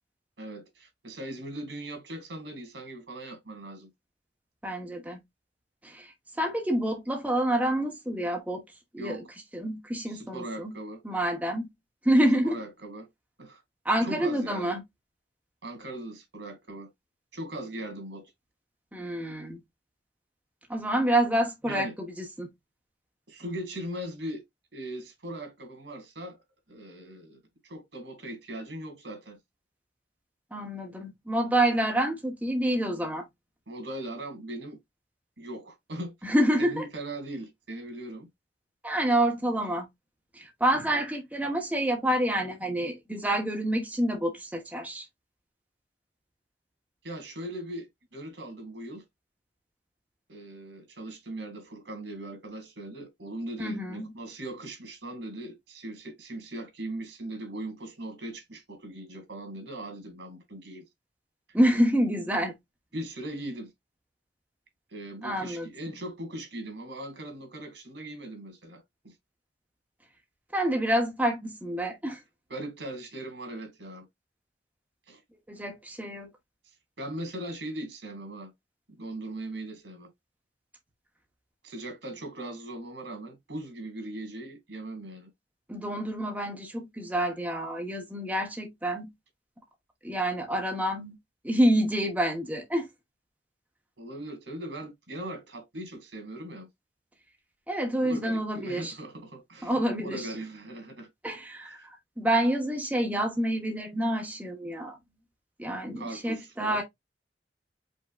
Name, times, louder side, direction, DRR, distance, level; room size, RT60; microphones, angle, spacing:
voice 1, 0.4-3.9 9.0-9.2 10.1-11.0 12.4-13.1 13.4-13.6 14.0-14.7 15.6-16.9 17.3-18.2 21.7-22.0 23.3-24.4 24.7-26.4 26.7-29.4 33.7-34.8 35.4-36.1 36.6-38.3 47.0-49.0 50.3-60.8 62.9-63.7 64.9-69.1 72.5-74.1 75.1-75.2 77.0-78.5 79.0-80.1 81.6-85.3 94.0-96.7 98.0-101.1 101.6-101.9 106.0-106.8, right 1 dB, 90° right, 2.1 m, -39 dB
voice 2, 4.6-5.2 5.8-6.1 6.4-8.6 8.9-9.2 9.5-10.7 11.0-11.7 12.0-12.6 13.8-14.8 18.9-19.6 20.7-21.9 22.2-22.5 30.5-33.3 36.2-36.9 38.8-39.9 40.3-45.1 53.6-54.1 61.5-62.5 65.2-65.7 70.5-72.2 75.5-76.3 85.7-89.1 90.0-91.1 91.4-92.9 97.7-98.9 99.6-100.3 101.2-101.8 102.2-105.0 105.6-106.8, right 1 dB, 10° right, 1.1 m, -27 dB
5.3 x 3.8 x 2.4 m
head